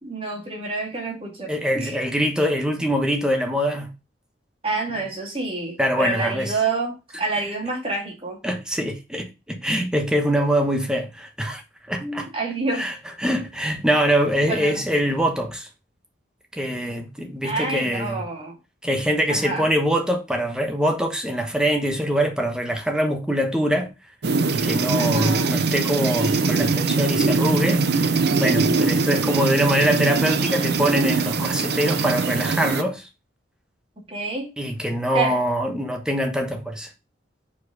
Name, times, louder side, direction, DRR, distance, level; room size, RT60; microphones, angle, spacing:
voice 1, 0.0-1.9 4.6-8.4 12.0-12.9 14.5-14.9 17.4-18.6 19.3-19.7 25.0-25.5 34.1-34.5 35.1-35.4, right 3 dB, 30° right, 2.1 m, -28 dB
voice 2, 1.5-3.9 5.8-6.6 8.4-11.6 11.9-12.3 12.7-15.7 16.5-18.3 18.8-23.9 24.5-33.1 34.6-36.9, equal, 5° right, 1.1 m, -23 dB
sound 1, 24.2-32.8, right 4 dB, 65° right, 0.7 m, -22 dB
5.2 x 4.7 x 4.7 m
head